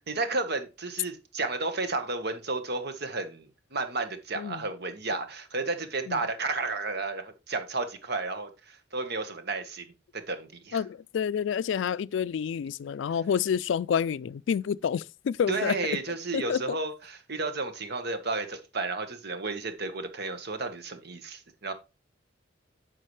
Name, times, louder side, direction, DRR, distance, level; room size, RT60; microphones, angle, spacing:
voice 1, 0.0-10.8 15.5-21.7, right 3 dB, 55° right, 1.4 m, -32 dB
voice 2, 10.7-15.8 16.3-16.6, left 7 dB, 70° left, 0.3 m, -28 dB
9.8 x 5.8 x 3.2 m
head